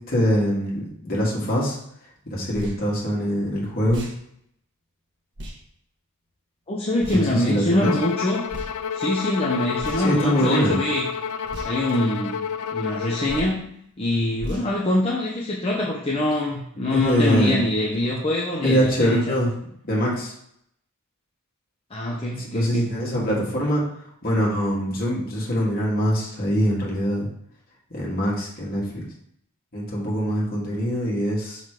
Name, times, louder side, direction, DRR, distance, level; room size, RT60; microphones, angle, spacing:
voice 1, 0.1-1.8 2.3-4.0 7.1-7.9 10.0-10.7 16.9-17.6 18.6-19.5 19.8-20.3 22.4-23.8 24.2-27.3 27.9-29.0 29.7-31.6, equal, 45° left, -4 dB, 2.1 m, -23 dB
sound 1, 2.5-2.8 3.8-4.2 5.4-5.6 7.0-7.3 8.5-8.7 9.8-10.2 11.5-11.7 13.3-13.6 14.4-14.7, equal, 55° right, 1.3 m, -35 dB
voice 2, 6.7-8.4 8.9-11.0 11.6-13.6 14.0-19.3 21.9-22.9 23.3-23.4, left 1 dB, 25° left, -4 dB, 0.8 m, -24 dB
Bowed string instrument, 7.8-13.6, left 7 dB, 80° left, 0.4 m, -29 dB
6.0 x 4.0 x 4.9 m, 0.72 s
head